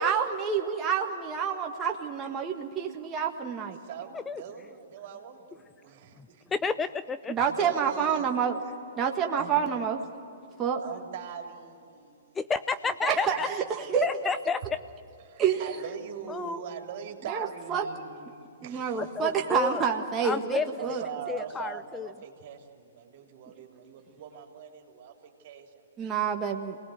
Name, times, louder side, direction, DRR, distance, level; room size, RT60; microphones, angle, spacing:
voice 1, 0.0-3.8 7.3-8.6 9.0-10.0 10.6-10.8 13.0-14.0 15.4-15.7 17.3-17.9 18.6-21.0 26.0-26.8, right 7 dB, 20° right, 1 dB, 1.7 m, -28 dB
voice 2, 3.8-6.1 7.5-8.4 9.4-9.5 10.8-12.4 13.4-14.1 15.2-19.3 20.8-25.8, right 8 dB, 50° right, 3 dB, 3.3 m, -42 dB
voice 3, 6.6-7.2 12.4-13.5 14.0-14.8 16.3-16.6 19.0-19.8 20.2-20.7 21.3-22.1, left 5 dB, 15° left, 13 dB, 0.5 m, -30 dB
27.0 x 19.5 x 7.9 m, 2.7 s
hypercardioid pair, 120°, 0 cm